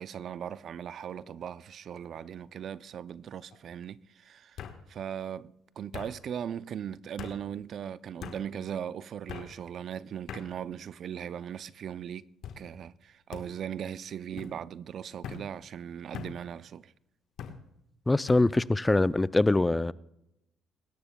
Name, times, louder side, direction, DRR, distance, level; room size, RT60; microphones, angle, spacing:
voice 1, 0.0-4.6 4.9-12.2 12.6-16.9, right 9 dB, 60° right, 0.4 m, -39 dB
sound 1, 1.1-1.5 1.9-2.4 3.5-3.6 4.6-4.8 5.9-6.1 7.2-7.4 8.2-8.4 9.3-9.5 10.3-10.5 11.2-11.6 12.4-12.6 13.3-13.5 14.4-14.5 15.2-15.4 16.1-16.4 17.4-17.6 18.3-18.5, left 8 dB, 75° left, 1.2 m, -42 dB
voice 2, 18.1-19.9, left 2 dB, 15° left, 0.3 m, -23 dB
23.0 x 12.0 x 2.2 m
supercardioid pair, 75°, 0 cm